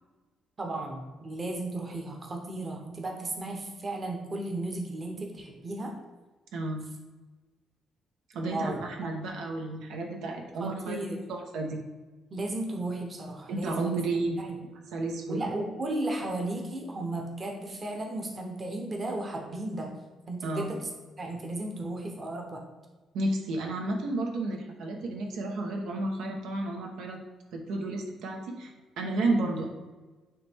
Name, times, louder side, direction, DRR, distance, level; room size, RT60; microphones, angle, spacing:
voice 1, 0.6-5.9 8.4-9.2 10.6-11.2 12.3-13.9 14.4-14.6 15.3-20.0 20.3-20.9 21.2-22.6, right 2 dB, 25° right, 2 dB, 0.9 m, -34 dB
voice 2, 6.5-6.9 8.3-11.0 11.3-11.8 13.5-14.4 14.9-15.4 20.4-20.7 23.1-27.2 27.5-29.7, right 2 dB, 90° right, 2 dB, 1.1 m, -32 dB
9.3 x 3.3 x 3.5 m, 1.2 s
cardioid pair, 155°, 0 cm